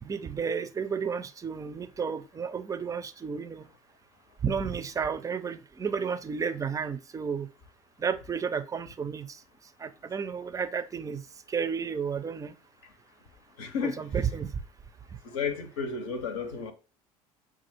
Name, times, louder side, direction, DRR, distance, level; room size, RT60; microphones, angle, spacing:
voice 1, 0.0-3.7 4.4-7.5 8.0-9.4 9.8-11.2 11.5-12.5 13.8-14.5, right 6 dB, 20° right, 0.4 m, -32 dB
voice 2, 13.6-14.0 15.2-16.7, left 5 dB, 65° left, 0.8 m, -32 dB
5.8 x 2.4 x 2.7 m
figure-of-eight pair, 60°, 18 cm